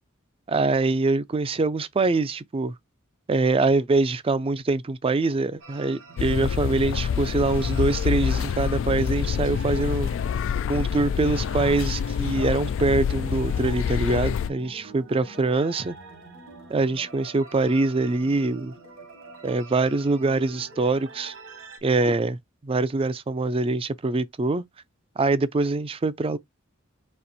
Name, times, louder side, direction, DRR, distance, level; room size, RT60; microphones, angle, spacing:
voice 1, 0.5-2.7 3.3-10.1 10.7-16.0 16.7-18.7 19.4-21.3 21.8-24.6 25.2-26.4, right 3 dB, 25° right, 0.4 m, -24 dB
sound 1, 5.6-21.8, right 3 dB, 70° right, 1.6 m, -45 dB
sound 2, 6.2-14.5, left 7 dB, 65° left, 0.3 m, -26 dB
4.3 x 2.9 x 4.1 m
head